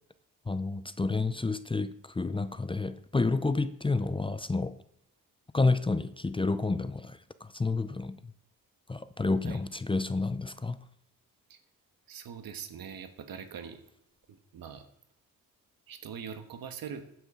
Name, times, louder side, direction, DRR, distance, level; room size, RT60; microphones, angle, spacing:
voice 1, 0.5-4.8 5.5-8.3 8.9-10.8, left 3 dB, 15° left, 13 dB, 0.5 m, -30 dB
voice 2, 12.1-13.8 14.3-14.9 15.9-17.0, right 7 dB, 80° right, 9 dB, 1.3 m, -42 dB
16.0 x 9.3 x 3.7 m, 0.75 s
cardioid pair, 90°, 35 cm